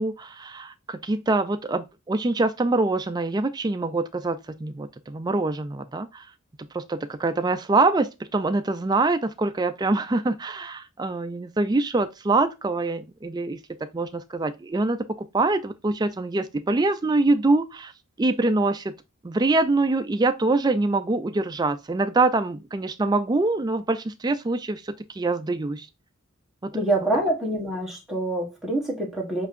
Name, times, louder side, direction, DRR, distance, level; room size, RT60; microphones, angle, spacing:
voice 1, 0.0-6.3 6.6-17.9 18.2-18.9 19.2-25.9 26.6-26.7, right 2 dB, 20° right, 0.3 m, -24 dB
voice 2, 26.7-29.5, right 1 dB, ahead, 1.1 m, -26 dB
7.0 x 2.7 x 2.5 m
head